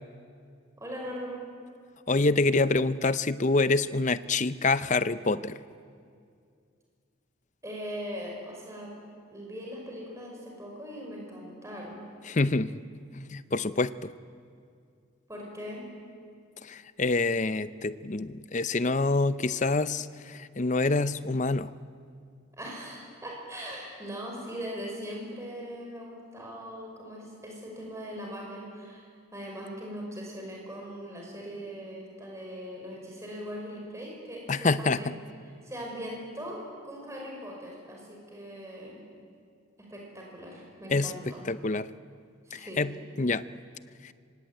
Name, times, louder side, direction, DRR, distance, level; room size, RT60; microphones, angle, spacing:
voice 1, 0.8-1.4 7.6-8.9 9.3-12.0 15.3-15.9 22.6-35.1 35.6-39.0 39.8-41.4 42.5-42.8, equal, 15° right, -1 dB, 5.7 m, -40 dB
voice 2, 2.1-5.6 12.2-12.8 13.1-14.1 16.6-21.7 34.5-35.1 40.9-41.9 42.5-43.4 44.0-44.1, left 3 dB, 35° left, 14 dB, 0.6 m, -27 dB
26.0 x 24.5 x 9.2 m, 2.3 s
head